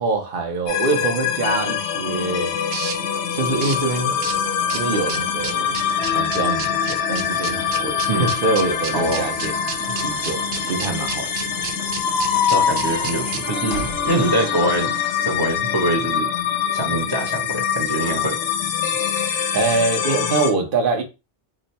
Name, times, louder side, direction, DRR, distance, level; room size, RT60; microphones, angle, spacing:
voice 1, 0.0-2.5 3.3-4.2 4.7-5.7 6.0-11.5 19.5-21.0, right 3 dB, 55° right, 1.0 m, -24 dB
sound 1, 0.7-20.5, left 8 dB, 85° left, 0.9 m, -24 dB
sound 2, 2.0-13.5, right 6 dB, 85° right, 1.0 m, -33 dB
voice 2, 8.9-9.3 12.5-16.3 16.7-18.4, right 1 dB, 25° right, 0.6 m, -24 dB
sound 3, 11.9-15.1, left 7 dB, 55° left, 0.5 m, -25 dB
3.0 x 2.2 x 4.0 m
omnidirectional pair, 1.1 m